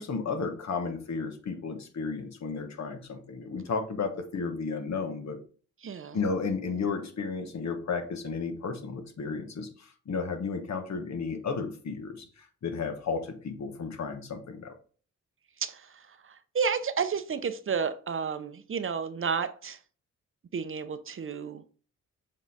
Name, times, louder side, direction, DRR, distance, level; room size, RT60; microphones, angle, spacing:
voice 1, 0.0-5.4 6.1-9.7 10.1-12.2 12.6-14.7, left 4 dB, 65° left, 1.3 m, -33 dB
voice 2, 5.8-6.2 15.6-19.8 20.5-21.6, right 6 dB, 45° right, 0.6 m, -31 dB
7.2 x 3.8 x 4.1 m
cardioid pair, 90°, 30 cm